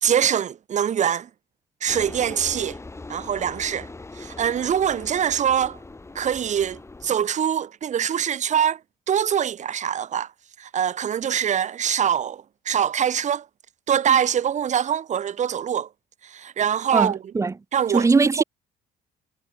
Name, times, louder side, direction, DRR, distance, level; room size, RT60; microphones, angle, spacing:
voice 1, 0.0-1.3 1.8-2.8 3.1-3.9 4.1-5.8 6.1-8.8 9.1-10.3 10.6-13.5 13.9-15.9 16.2-17.2 17.7-18.1 18.4-18.5, right 9 dB, 45° right, 1.6 m, -23 dB
sound 1, 1.9-7.1, left 3 dB, 15° left, 6.9 m, -40 dB
voice 2, 16.9-17.5 17.9-18.4, right 4 dB, 15° right, 0.7 m, -20 dB
cardioid pair, 110°, 17 cm